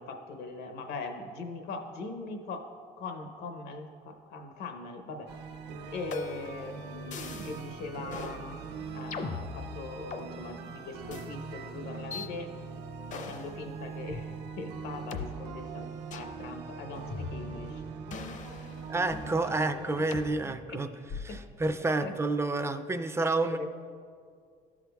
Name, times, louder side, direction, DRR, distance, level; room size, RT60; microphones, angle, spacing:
voice 1, 0.0-2.7 3.0-5.3 5.9-8.7 8.9-12.5 13.1-17.8 19.5-20.8 21.3-21.4 22.0-22.2 23.4-23.7, left 3 dB, 80° left, 5 dB, 0.9 m, -41 dB
sound 1, 5.3-20.4, right 4 dB, 85° right, 0.7 m, -42 dB
sound 2, 6.1-6.6 7.1-7.7 8.1-8.4 9.1-10.3 11.1-11.3 12.1-12.3 13.1-13.5 14.1-14.2 15.1-15.2 16.1-16.4 17.1-17.7 18.1-19.4 20.1-20.3 21.1-21.5, left 5 dB, 45° left, 0.6 m, -40 dB
voice 2, 18.9-20.9 21.2-23.7, right 2 dB, 15° right, 9 dB, 0.3 m, -29 dB
13.0 x 6.0 x 2.3 m, 2.1 s
cardioid pair, 110°, 17 cm